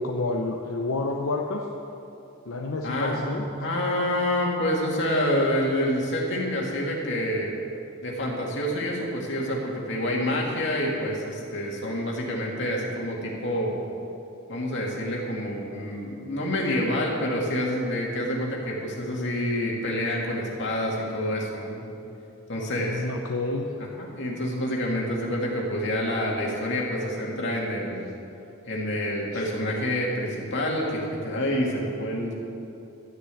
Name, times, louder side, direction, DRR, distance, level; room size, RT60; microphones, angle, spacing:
voice 1, 0.0-1.7 2.5-3.4 22.5-23.7 29.3-29.5, left 2 dB, 75° left, 0 dB, 0.8 m, -29 dB
voice 2, 2.8-7.5 8.0-13.8 14.5-21.9 22.5-23.0 24.0-28.1 28.7-32.3, left 1 dB, 55° left, -2 dB, 2.3 m, -27 dB
12.5 x 6.7 x 8.4 m, 2.8 s
head